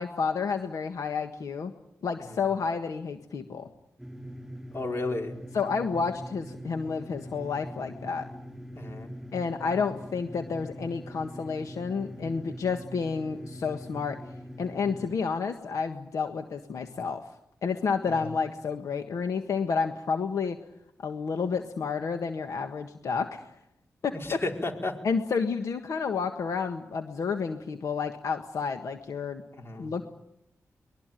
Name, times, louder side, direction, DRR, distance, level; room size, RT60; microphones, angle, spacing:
voice 1, 0.0-1.7 2.0-3.7 5.5-8.3 9.3-14.2 14.6-17.3 17.6-20.6 21.0-23.4 24.0-24.4 25.0-29.4 29.8-30.0, left 5 dB, 85° left, 6 dB, 1.6 m, -30 dB
sound 1, 4.0-15.2, equal, 5° right, 5.6 m, -43 dB
voice 2, 4.7-5.4 8.7-9.1 24.2-25.0 29.6-29.9, left 2 dB, 50° left, 3 dB, 5.1 m, -32 dB
24.0 x 21.5 x 9.2 m, 0.78 s
cardioid pair, 65°, 6 cm